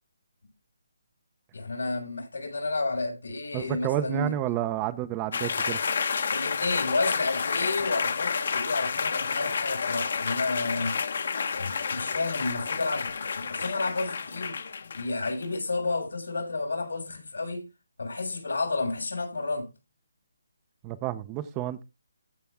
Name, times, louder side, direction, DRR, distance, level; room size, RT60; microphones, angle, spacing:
voice 1, 1.5-4.3 6.3-11.0 11.5-14.6 14.9-17.7 18.0-19.7, left 3 dB, 85° left, 6.5 m, -31 dB
voice 2, 3.5-5.8 20.8-21.8, right 13 dB, 15° right, 0.6 m, -30 dB
sound 1, 5.3-15.6, left 5 dB, 55° left, 1.2 m, -30 dB
14.0 x 5.7 x 3.6 m
hypercardioid pair, 165°, 0 cm